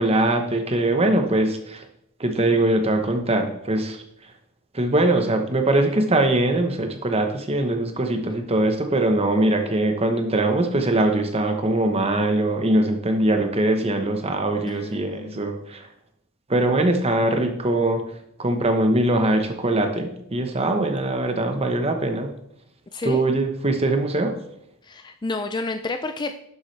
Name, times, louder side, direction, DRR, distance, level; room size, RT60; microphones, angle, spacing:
voice 1, 0.0-1.8 2.2-4.0 4.7-15.8 16.5-18.0 18.4-22.3 23.0-24.3, right 1 dB, 25° right, 5 dB, 1.0 m, -22 dB
voice 2, 14.7-15.6 22.9-23.2 24.8-26.3, left 3 dB, 20° left, 7 dB, 0.4 m, -30 dB
11.5 x 7.2 x 3.3 m, 0.74 s
head